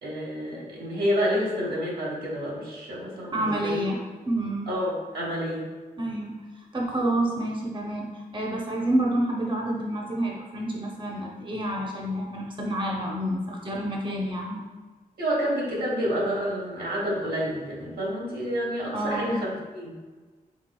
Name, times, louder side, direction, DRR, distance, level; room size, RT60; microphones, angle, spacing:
voice 1, 0.0-3.8 4.7-5.7 15.2-19.9, equal, 85° right, -5 dB, 1.2 m, -29 dB
voice 2, 3.3-4.0 4.3-4.7 6.0-14.7 18.9-19.4, right 1 dB, 35° right, -2 dB, 0.7 m, -28 dB
4.6 x 3.5 x 2.2 m, 1.4 s
cardioid pair, 60°, 15 cm